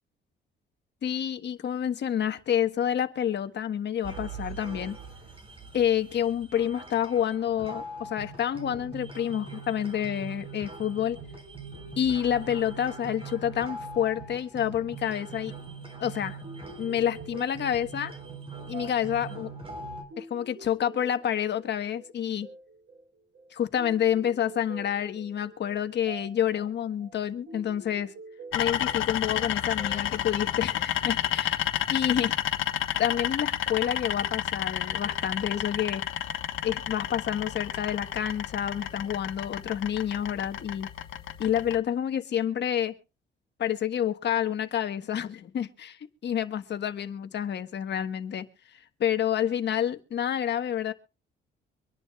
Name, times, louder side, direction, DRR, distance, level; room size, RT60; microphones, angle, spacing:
voice 1, 1.0-5.0 5.7-11.2 12.0-15.5 16.0-16.4 16.8-18.1 18.7-19.5 20.2-22.5 23.5-28.1 28.5-32.3 33.0-36.0 36.6-40.9 41.4-42.9 43.6-48.5 48.7-50.9, left 9 dB, 60° left, 1.3 m, -28 dB
sound 1, 4.0-20.0, right 4 dB, 30° right, 4.2 m, -42 dB
sound 2, 16.4-31.2, right 4 dB, 80° right, 4.4 m, -48 dB
sound 3, 28.5-41.8, left 11 dB, 85° left, 1.3 m, -31 dB
25.0 x 10.5 x 2.4 m
cardioid pair, 90°, 20 cm